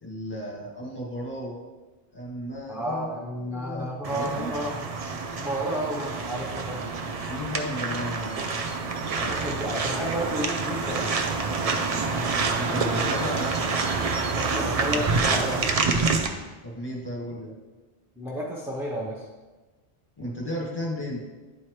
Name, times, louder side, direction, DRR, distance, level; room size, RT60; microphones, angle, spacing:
voice 1, 0.0-1.6 2.1-3.1 3.4-4.5 7.3-8.5 12.5-13.5 16.6-17.6 20.2-21.2, left 1 dB, 20° left, -4 dB, 1.7 m, -34 dB
voice 2, 2.7-4.8 5.4-6.8 9.2-11.1 14.3-15.6 18.2-19.2, right 1 dB, 5° right, -2 dB, 0.6 m, -31 dB
sound 1, 4.0-16.3, right 4 dB, 45° right, 0.5 m, -27 dB
9.9 x 4.4 x 3.2 m, 1.2 s
omnidirectional pair, 1.1 m